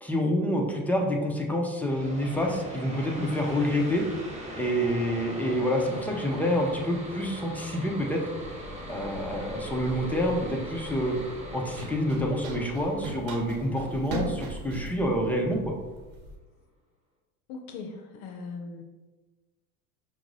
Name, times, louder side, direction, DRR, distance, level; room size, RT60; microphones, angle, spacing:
voice 1, 0.0-4.0 4.5-8.2 8.9-11.1 11.5-15.7, equal, 5° left, 1 dB, 0.4 m, -27 dB
sound 1, 1.8-15.2, equal, 15° right, 0.8 m, -41 dB
Run, 8.4-16.4, right 1 dB, 65° right, 0.8 m, -40 dB
voice 2, 13.7-14.0 17.5-18.8, left 4 dB, 60° left, 4 dB, 0.6 m, -40 dB
5.6 x 2.0 x 2.6 m, 1.2 s
hypercardioid pair, 80°, 44 cm